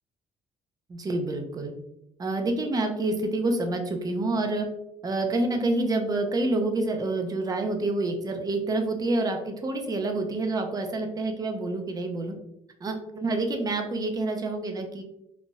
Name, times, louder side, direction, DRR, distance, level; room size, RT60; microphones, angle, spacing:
voice 1, 0.9-1.7 2.2-4.7 5.0-12.3 12.8-15.0, right 2 dB, 30° right, 4 dB, 0.6 m, -27 dB
3.9 x 2.5 x 2.3 m, 0.80 s
cardioid pair, 115°, 14 cm